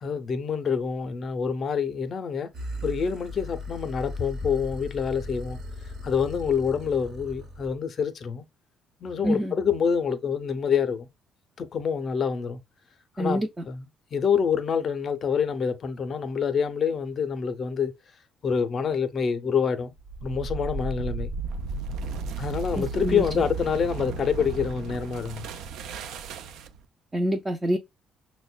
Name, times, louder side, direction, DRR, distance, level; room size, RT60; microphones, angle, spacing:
voice 1, 0.0-2.5 2.8-5.6 6.0-8.5 9.0-11.1 11.6-12.6 13.2-17.9 18.4-19.9 20.2-21.3 22.4-25.5, left 6 dB, 45° left, 0.5 m, -27 dB
sound 1, 2.5-7.7, left 1 dB, 55° right, 0.9 m, -37 dB
voice 2, 9.2-9.5 13.2-13.5 22.8-23.2 27.1-27.8, equal, 20° right, 0.4 m, -26 dB
sound 2, 20.0-26.8, right 3 dB, 80° right, 0.4 m, -34 dB
6.1 x 2.1 x 2.2 m
cardioid pair, 135°, 0 cm